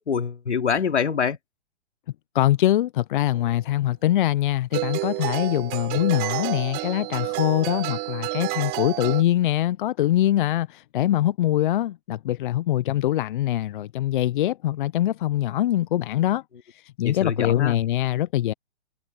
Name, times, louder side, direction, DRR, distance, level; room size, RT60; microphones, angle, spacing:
voice 1, 0.0-1.4 17.0-17.8, left 6 dB, 80° left, 3.3 m, -25 dB
voice 2, 2.3-16.4 17.0-18.5, left 13 dB, 50° left, 0.7 m, -23 dB
sound 1, 3.3-3.5 4.7-9.2, right 22 dB, 30° right, 4.4 m, -29 dB
hypercardioid pair, 135°, 34 cm